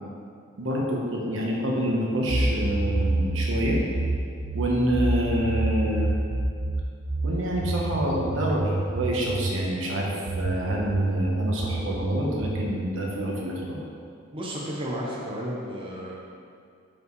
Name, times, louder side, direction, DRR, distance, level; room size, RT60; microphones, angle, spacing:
voice 1, 0.6-3.8 4.5-6.1 7.2-13.8, equal, 75° right, -3 dB, 1.1 m, -27 dB
sound 1, 2.3-9.6 10.3-12.7, right 2 dB, 55° right, 0.5 m, -27 dB
voice 2, 14.3-16.2, equal, 25° right, -5 dB, 0.8 m, -32 dB
7.1 x 5.4 x 3.2 m, 2.4 s
head